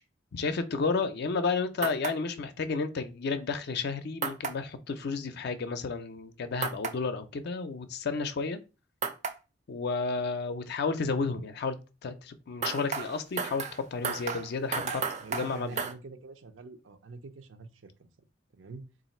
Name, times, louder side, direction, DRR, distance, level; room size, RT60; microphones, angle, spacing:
voice 1, 0.3-8.6 9.7-11.8 12.0-15.0 15.3-15.8, left 4 dB, 60° left, 0.4 m, -32 dB
sound 1, 1.8-2.1 4.2-4.5 6.6-6.9 9.0-9.3 12.6-15.9, right 5 dB, 40° right, 0.5 m, -33 dB
voice 2, 15.2-18.1 18.5-18.9, right 3 dB, 80° right, 0.6 m, -46 dB
3.2 x 2.5 x 4.1 m
head